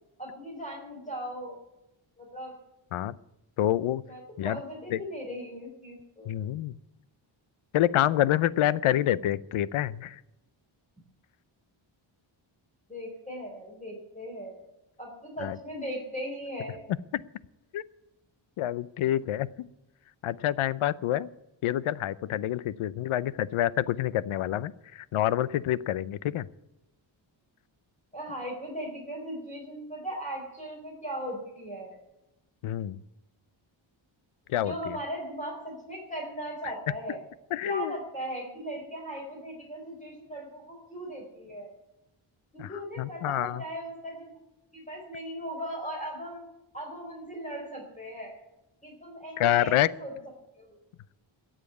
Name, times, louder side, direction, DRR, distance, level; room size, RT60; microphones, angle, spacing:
voice 1, 0.2-1.6 2.2-2.6 4.1-6.3 12.9-14.6 15.0-16.8 28.1-32.0 34.6-37.2 37.6-41.7 42.5-44.3 44.7-46.4 46.7-48.4 48.8-50.1 50.6-50.8, equal, 15° left, -1 dB, 4.5 m, -38 dB
voice 2, 3.6-4.0 4.4-4.6 4.9-5.0 6.3-6.8 7.7-10.2 15.4-15.6 17.1-17.2 17.7-17.8 18.6-19.5 20.2-21.3 21.6-26.5 32.6-33.0 34.5-34.7 37.5-37.9 42.6-43.6 49.4-49.9, left 12 dB, 90° left, 20 dB, 0.7 m, -27 dB
13.5 x 7.6 x 9.2 m, 0.93 s
cardioid pair, 90°, 48 cm